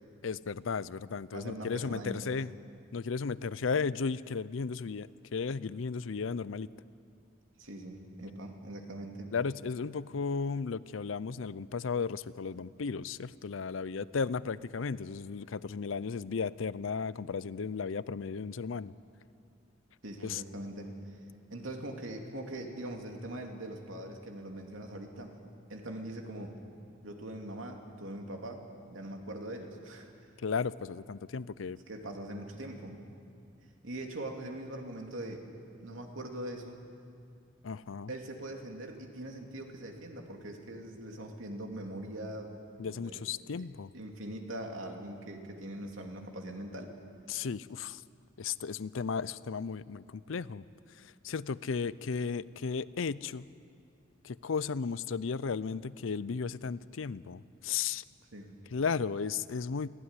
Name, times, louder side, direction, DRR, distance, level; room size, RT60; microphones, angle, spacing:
voice 1, 0.2-2.5 2.9-6.7 9.3-18.9 20.2-20.4 30.4-31.8 37.6-38.1 42.8-43.9 47.3-48.0 48.4-50.6 51.0-53.5 54.2-58.0 58.7-59.9, left 5 dB, 80° left, 18 dB, 0.5 m, -35 dB
voice 2, 1.3-2.4 7.6-9.3 20.0-21.2 21.5-25.3 25.7-26.6 27.0-30.1 31.9-33.0 33.8-35.4 35.8-36.8 38.1-42.5 42.8-43.2 43.6-43.7 43.9-46.9 58.3-58.6, right 1 dB, 90° right, 2 dB, 2.7 m, -42 dB
23.5 x 15.5 x 9.8 m, 2.5 s
head